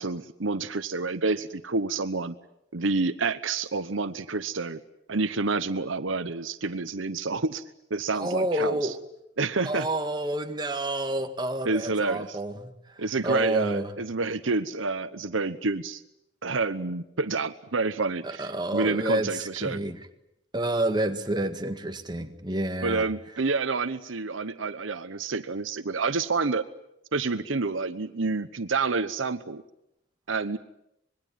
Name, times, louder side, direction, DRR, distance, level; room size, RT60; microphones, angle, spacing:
voice 1, 0.0-2.3 2.7-4.8 5.1-7.6 7.9-8.9 9.4-9.9 11.6-12.4 13.0-16.0 16.4-19.8 22.8-26.6 27.1-29.6 30.3-30.6, right 3 dB, 90° right, 1.0 m, -28 dB
voice 2, 8.1-9.0 9.6-13.9 18.2-20.0 20.5-23.1, right 1 dB, 20° right, 1.8 m, -29 dB
25.5 x 21.5 x 9.2 m
head